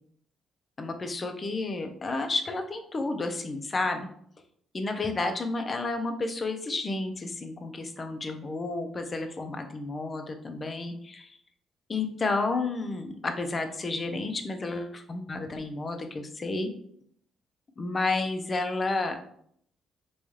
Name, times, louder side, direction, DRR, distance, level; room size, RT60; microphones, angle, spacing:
voice 1, 0.8-4.1 4.7-11.3 11.9-16.7 17.8-19.2, left 3 dB, 35° left, 6 dB, 0.6 m, -31 dB
4.0 x 2.3 x 3.1 m, 0.66 s
cardioid pair, 90°, 0 cm